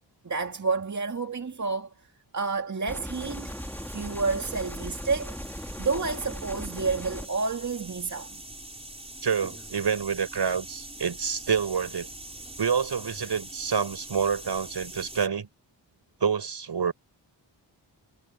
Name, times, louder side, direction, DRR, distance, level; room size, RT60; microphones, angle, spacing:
voice 1, 0.2-2.1 2.3-8.4, right 4 dB, 40° right, 2.1 m, -30 dB
sound 1, 2.9-7.3, equal, 5° left, 3.5 m, -38 dB
sound 2, 3.1-15.3, right 1 dB, 15° right, 4.7 m, -44 dB
voice 2, 9.2-12.1 12.6-15.5 16.2-16.9, right 6 dB, 65° right, 5.7 m, -27 dB
wide cardioid pair, 105°, 43 cm